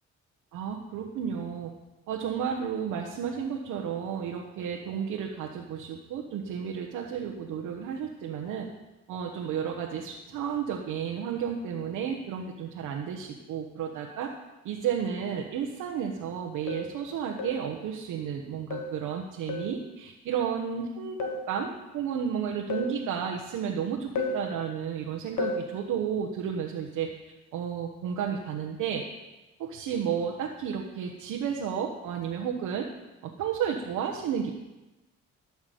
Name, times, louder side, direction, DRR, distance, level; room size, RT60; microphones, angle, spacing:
voice 1, 0.5-1.7 2.1-8.7 9.1-14.3 14.6-27.1 27.5-29.0 29.6-32.9 33.2-34.5, right 7 dB, 90° right, 1 dB, 1.3 m, -32 dB
sound 1, 15.7-15.8 16.7-17.0 17.4-17.7 18.7-19.0 19.5-19.8 21.2-21.5 22.7-23.0 24.2-24.5 25.4-25.7, left 3 dB, 65° left, 1.7 m, -32 dB
13.0 x 6.1 x 7.8 m, 1.0 s
cardioid pair, 90°, 30 cm